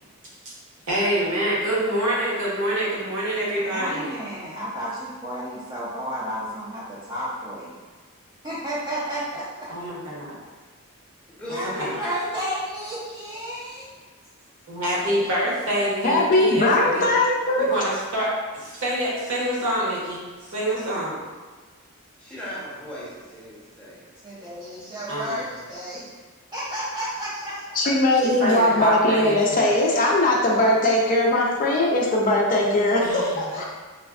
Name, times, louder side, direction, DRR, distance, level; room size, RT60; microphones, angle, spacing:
voice 1, 0.9-4.1 9.7-10.3 11.8-11.9 14.7-17.1 17.6-18.3 18.5-20.2 20.5-21.2 25.1-25.5 28.1-29.7 33.0-33.7, right 1 dB, 60° right, -6 dB, 0.9 m, -26 dB
voice 2, 3.4-7.7 8.4-9.7 11.5-13.9 24.2-26.1 26.5-27.7 33.5-33.6, equal, 20° right, -10 dB, 0.5 m, -32 dB
voice 3, 11.3-12.1 22.2-24.0, equal, 5° left, -9 dB, 0.7 m, -37 dB
voice 4, 16.0-17.8 27.7-33.6, left 1 dB, 40° left, -2 dB, 0.4 m, -20 dB
3.4 x 2.1 x 2.3 m, 1.4 s
head